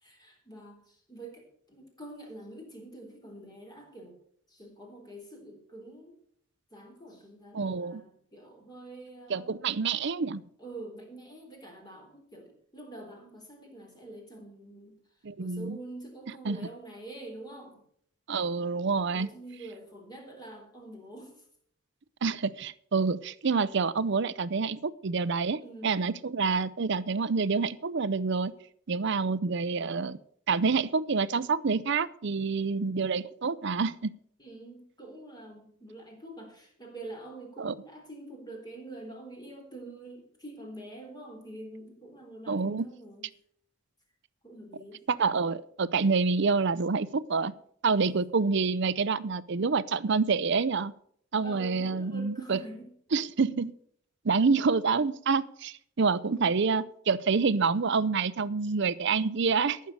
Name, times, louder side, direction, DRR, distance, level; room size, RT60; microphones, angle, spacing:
voice 1, 0.0-4.2 4.5-6.2 6.7-9.6 10.6-15.0 15.4-17.8 19.1-21.4 25.6-26.2 34.4-43.3 44.4-45.0 48.0-48.1 51.4-52.9, right 2 dB, 20° left, 2 dB, 3.5 m, -46 dB
voice 2, 7.5-8.0 9.3-10.4 15.2-15.8 16.4-16.7 18.3-19.3 22.2-28.5 28.9-30.2 30.5-34.1 37.6-37.7 42.5-42.9 45.1-47.5 47.8-50.9 51.3-52.6 53.1-53.7 54.2-59.8, right 4 dB, 55° right, 18 dB, 0.6 m, -27 dB
14.5 x 6.7 x 6.6 m, 0.64 s
head